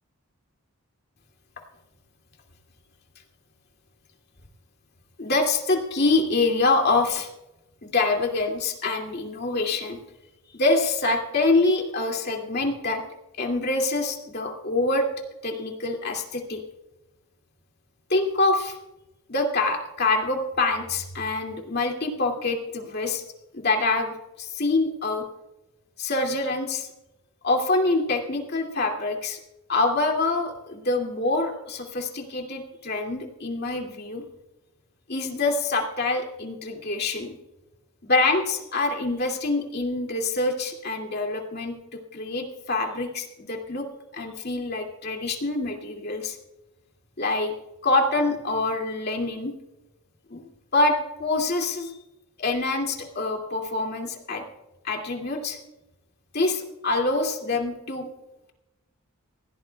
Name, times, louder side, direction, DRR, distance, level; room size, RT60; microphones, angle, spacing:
voice 1, 5.2-7.3 7.8-10.0 10.5-13.0 13.4-15.1 15.4-16.6 18.1-18.8 19.3-23.2 23.5-25.2 26.0-26.9 27.4-29.4 29.7-34.2 35.1-37.4 38.0-41.8 42.1-43.9 44.1-46.4 47.2-47.5 47.8-49.5 50.3-50.4 50.7-51.9 52.4-54.4 54.8-55.6 56.3-58.1, left 2 dB, 45° left, 1 dB, 2.4 m, -25 dB
20.0 x 17.0 x 2.3 m, 0.93 s
head